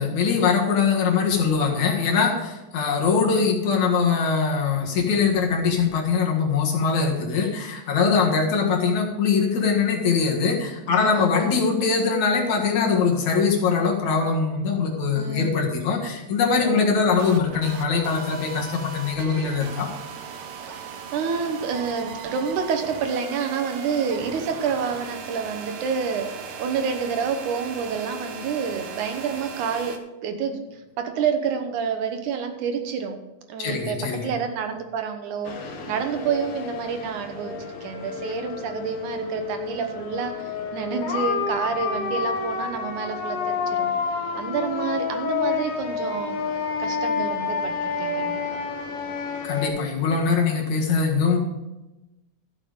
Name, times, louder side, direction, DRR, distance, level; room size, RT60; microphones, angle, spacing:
voice 1, 0.0-19.9 33.6-34.3 49.4-51.4, left 5 dB, 75° left, 0 dB, 3.1 m, -22 dB
voice 2, 8.0-8.3 10.9-11.5 15.1-15.5 16.6-17.0 20.7-26.3 26.6-33.2 33.5-43.9 44.3-46.4 46.8-48.4, right 6 dB, 85° right, 6 dB, 2.6 m, -28 dB
sound 1, 16.9-30.0, right 5 dB, 65° right, 1.7 m, -38 dB
sound 2, 35.4-49.7, left 5 dB, 55° left, 2.1 m, -29 dB
13.5 x 7.3 x 5.1 m, 1.0 s
omnidirectional pair, 3.4 m